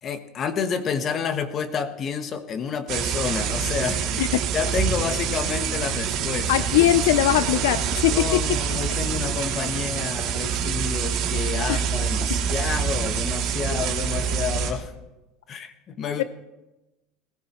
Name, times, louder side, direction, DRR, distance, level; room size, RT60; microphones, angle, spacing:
voice 1, 0.0-4.3 4.5-6.5 8.1-14.9 15.5-16.2, left 6 dB, 40° left, 9 dB, 1.3 m, -29 dB
sound 1, 2.9-14.7, right 7 dB, 60° right, 2.8 m, -26 dB
voice 2, 6.5-8.6 11.7-11.8 13.7-13.8 16.0-16.2, left 14 dB, 85° left, 15 dB, 0.4 m, -21 dB
19.0 x 14.5 x 3.0 m, 1.0 s
supercardioid pair, 105°, 0 cm